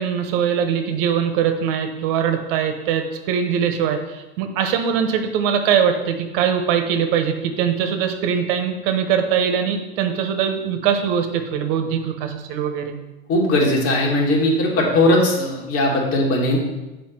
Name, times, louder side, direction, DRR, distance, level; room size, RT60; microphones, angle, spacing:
voice 1, 0.0-12.9, right 8 dB, 65° right, 6 dB, 1.1 m, -22 dB
voice 2, 13.3-16.6, left 1 dB, 50° left, -1 dB, 2.3 m, -18 dB
7.5 x 5.1 x 4.5 m, 1.0 s
hypercardioid pair, 105°, 31 cm